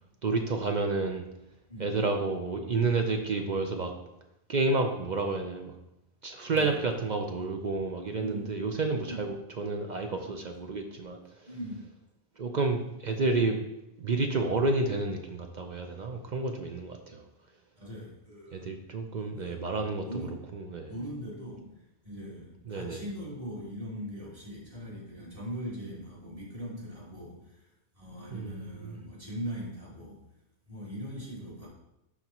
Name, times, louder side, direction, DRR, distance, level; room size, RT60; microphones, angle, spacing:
voice 1, 0.2-1.2 1.8-3.9 4.5-5.7 6.2-11.2 12.4-13.6 14.0-17.2 18.5-20.1 20.5-20.9 22.7-23.0 28.3-28.6 28.8-28.9, right 3 dB, 50° right, 4 dB, 0.6 m, -30 dB
voice 2, 8.2-8.6 9.1-9.2 11.5-11.8 17.8-18.7 19.2-19.5 20.0-20.4 20.9-21.7 22.0-27.6 27.9-30.2 30.7-31.7, equal, 30° right, -7 dB, 2.9 m, -40 dB
11.5 x 4.0 x 3.0 m, 0.88 s
omnidirectional pair, 1.3 m